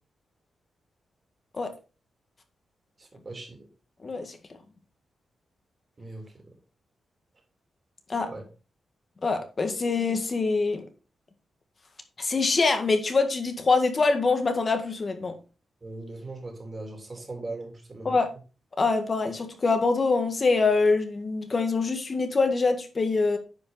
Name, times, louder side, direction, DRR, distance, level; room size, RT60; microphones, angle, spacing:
voice 1, 3.0-3.7 6.0-6.3 8.3-8.4 15.8-18.2, right 2 dB, 30° right, 1 dB, 3.3 m, -39 dB
voice 2, 4.0-4.4 8.1-8.3 9.2-10.8 12.2-15.3 18.0-18.3 18.8-23.4, left 4 dB, 35° left, 6 dB, 1.8 m, -24 dB
9.7 x 5.3 x 4.1 m, 0.33 s
cardioid pair, 105°, 0 cm